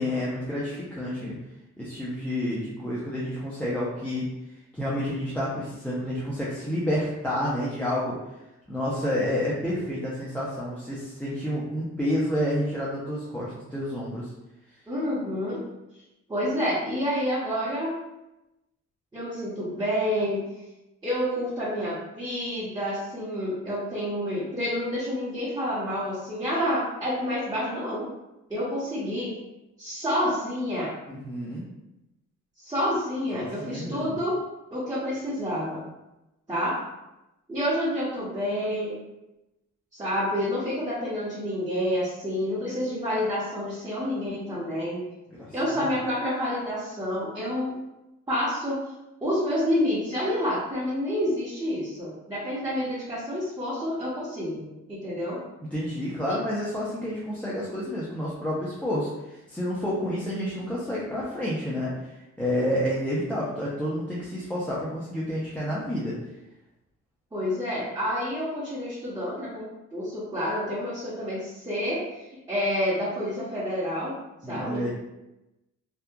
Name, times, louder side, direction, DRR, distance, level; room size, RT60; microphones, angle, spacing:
voice 1, 0.0-1.4 1.8-4.3 4.7-8.1 8.7-14.2 31.1-31.6 33.3-34.2 45.4-45.5 55.7-62.1 62.4-66.1 74.4-74.9, equal, 5° left, -8 dB, 0.5 m, -29 dB
voice 2, 14.9-15.6 16.3-17.9 19.1-20.4 21.0-28.1 28.5-29.3 29.8-30.9 32.6-34.4 34.7-35.8 36.5-36.8 37.5-39.0 39.9-45.0 45.5-47.8 48.3-48.8 49.2-55.4 56.3-56.4 67.3-74.1 74.5-74.9, equal, 15° right, -10 dB, 0.9 m, -28 dB
2.8 x 2.3 x 2.2 m, 0.95 s
cardioid pair, 90°, 30 cm